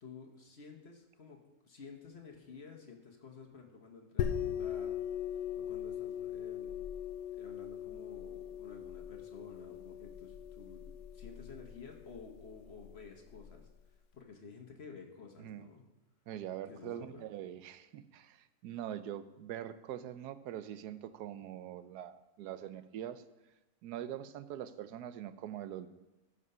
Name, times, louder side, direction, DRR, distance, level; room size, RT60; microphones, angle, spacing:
voice 1, 0.0-5.0 5.3-6.9 7.3-10.8 11.1-13.7 14.1-15.8 16.7-17.2, left 5 dB, 45° left, 2 dB, 1.3 m, -52 dB
sound 1, 4.2-13.5, left 9 dB, 90° left, 1.2 m, -40 dB
voice 2, 16.3-23.2 23.8-25.9, right 11 dB, 90° right, 13 dB, 1.2 m, -43 dB
14.0 x 5.1 x 5.5 m, 1.0 s
omnidirectional pair, 1.6 m